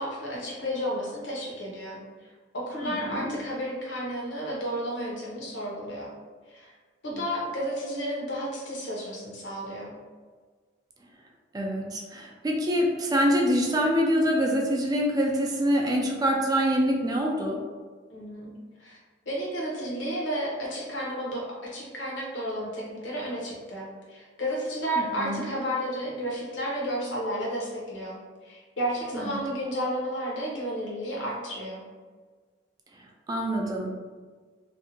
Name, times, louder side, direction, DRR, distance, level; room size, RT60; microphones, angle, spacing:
voice 1, 0.0-2.0 2.5-6.1 6.5-6.7 7.0-9.9 18.1-18.5 18.8-19.0 19.2-31.8, equal, 80° left, -4 dB, 0.8 m, -32 dB
voice 2, 2.8-3.3 11.5-17.6 25.0-25.5 29.1-29.4 33.3-33.9, equal, 20° right, 0 dB, 0.3 m, -25 dB
2.5 x 2.2 x 2.8 m, 1.5 s
head